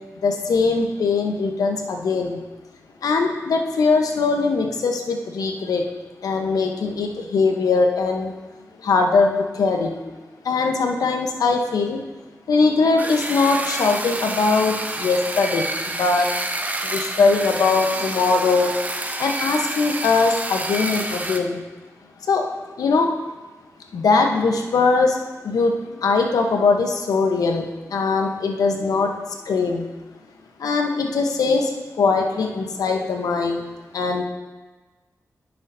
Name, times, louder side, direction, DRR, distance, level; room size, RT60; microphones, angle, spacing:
voice 1, 0.2-2.4 3.0-5.8 6.2-8.3 8.8-9.9 10.4-12.0 12.5-16.3 16.8-18.7 19.2-21.6 22.3-22.4 22.8-23.1 23.9-25.2 25.4-25.8 26.0-29.1 29.4-29.9 30.6-31.7 32.0-33.7 33.9-34.2, left 4 dB, 80° left, 3 dB, 0.9 m, -21 dB
sound 1, 13.0-21.4, right 2 dB, 25° right, 0.8 m, -28 dB
9.6 x 6.8 x 2.7 m, 1.2 s
cardioid pair, 45°, 6 cm